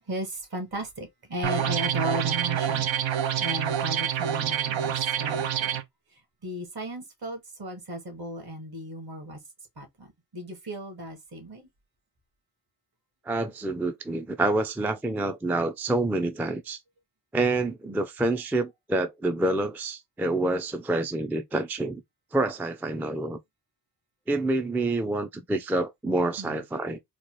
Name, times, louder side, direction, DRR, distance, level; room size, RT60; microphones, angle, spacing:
voice 1, 0.1-5.8 6.1-9.4 9.8-11.7 26.4-26.6, right 1 dB, 55° right, 1.7 m, -36 dB
sound 1, 1.4-5.8, right 9 dB, 90° right, 0.6 m, -27 dB
voice 2, 13.3-16.8 17.3-22.0 22.3-23.4 24.3-27.0, right 2 dB, 5° right, 0.3 m, -27 dB
4.1 x 2.3 x 3.0 m
wide cardioid pair, 85°, 44 cm